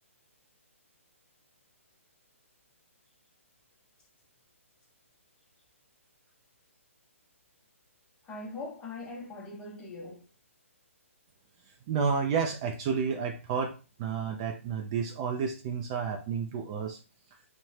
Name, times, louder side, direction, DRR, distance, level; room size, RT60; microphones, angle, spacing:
voice 1, 8.2-10.2, left 2 dB, 15° left, 0.7 m, -41 dB
voice 2, 11.9-17.0, right 6 dB, 30° right, 0.4 m, -31 dB
2.6 x 2.1 x 3.1 m
figure-of-eight pair, 135°, 8 cm